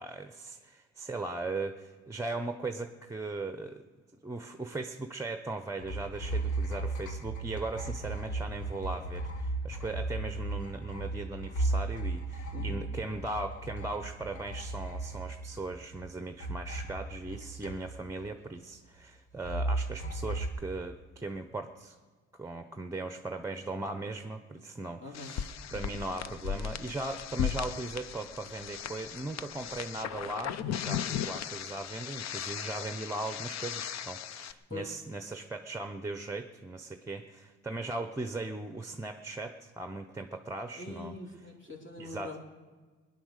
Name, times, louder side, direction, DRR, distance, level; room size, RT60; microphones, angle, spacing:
voice 1, 0.0-3.8 4.2-22.0 22.3-41.2 42.0-42.3, right 2 dB, 10° right, 8 dB, 0.7 m, -38 dB
sound 1, 5.8-16.1 16.4-18.2 19.4-20.5, right 2 dB, 75° left, 1.6 m, -35 dB
voice 2, 12.5-12.9 25.0-25.4 34.7-34.9 40.7-42.4, left 3 dB, 40° left, -1 dB, 3.0 m, -43 dB
sound 2, 25.1-34.5, left 9 dB, 60° left, 0.7 m, -37 dB
19.0 x 10.0 x 6.6 m, 1.4 s
cardioid pair, 90°, 30 cm